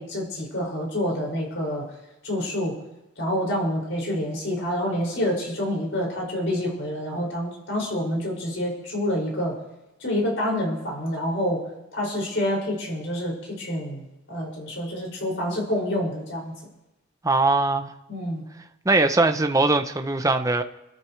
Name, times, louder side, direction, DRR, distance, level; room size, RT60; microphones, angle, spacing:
voice 1, 0.0-1.8 2.2-2.8 3.2-9.6 10.0-11.6 11.9-16.5 18.1-18.4, equal, 70° left, 6.2 m, -27 dB
voice 2, 17.2-17.9 18.9-20.6, right 3 dB, 15° right, 0.7 m, -21 dB
29.0 x 13.5 x 3.3 m
head